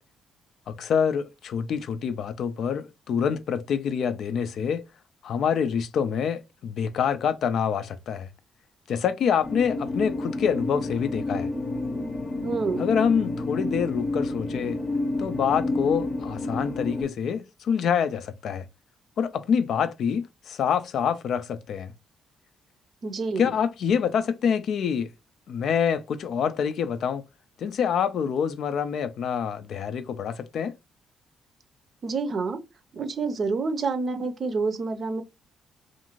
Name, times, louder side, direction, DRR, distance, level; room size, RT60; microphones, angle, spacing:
voice 1, 0.7-4.8 5.2-8.3 8.9-11.5 12.8-14.8 15.2-18.6 19.2-21.9 23.4-25.1 25.5-27.2 27.6-30.7, left 7 dB, 65° left, 0.3 m, -26 dB
sound 1, 9.4-17.0, left 2 dB, 40° left, 0.7 m, -30 dB
voice 2, 12.4-12.8 23.0-23.5 32.0-32.6 32.9-35.2, right 4 dB, 50° right, 0.5 m, -28 dB
2.5 x 2.4 x 2.9 m
cardioid pair, 90°, 0 cm